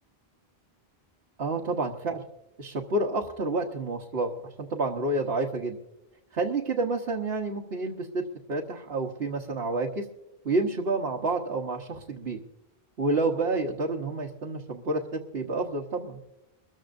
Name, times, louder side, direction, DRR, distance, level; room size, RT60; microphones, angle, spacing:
voice 1, 1.4-2.2 2.6-5.8 6.3-8.2 8.5-10.0 10.4-12.4 13.0-16.2, right 2 dB, 70° right, -1 dB, 1.4 m, -29 dB
24.0 x 14.0 x 2.6 m, 0.89 s
omnidirectional pair, 1.1 m